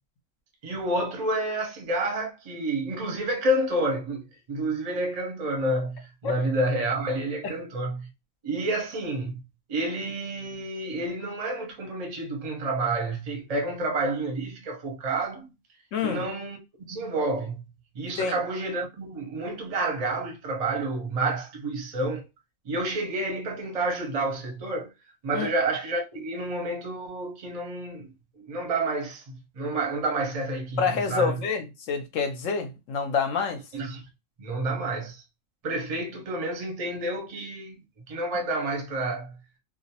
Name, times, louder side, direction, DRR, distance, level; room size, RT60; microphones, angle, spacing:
voice 1, 0.6-8.1 8.4-9.4 9.7-15.5 16.0-16.6 16.9-22.3 22.6-24.9 25.2-31.3 33.7-34.1 34.4-35.2 35.6-37.8 38.1-39.4, right 2 dB, 40° right, 0.5 m, -29 dB
voice 2, 15.9-16.2 18.2-18.4 25.3-25.5 30.8-33.6, left 6 dB, 70° left, 0.9 m, -27 dB
2.5 x 2.0 x 2.7 m
omnidirectional pair, 1.5 m